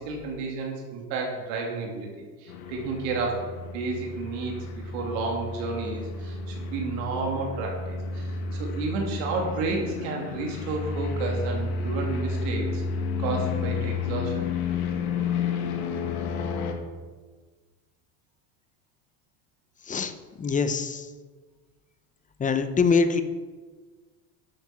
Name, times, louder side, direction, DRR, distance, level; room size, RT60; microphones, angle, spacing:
voice 1, 0.0-2.1 2.4-12.8 13.2-14.5, right 3 dB, 65° right, 0 dB, 2.7 m, -31 dB
sound 1, 2.5-16.7, left 4 dB, 80° left, 1.8 m, -31 dB
voice 2, 20.4-21.1 22.4-23.2, left 5 dB, 20° left, 9 dB, 0.8 m, -23 dB
11.5 x 7.0 x 5.9 m, 1.4 s
supercardioid pair, 120°, 43 cm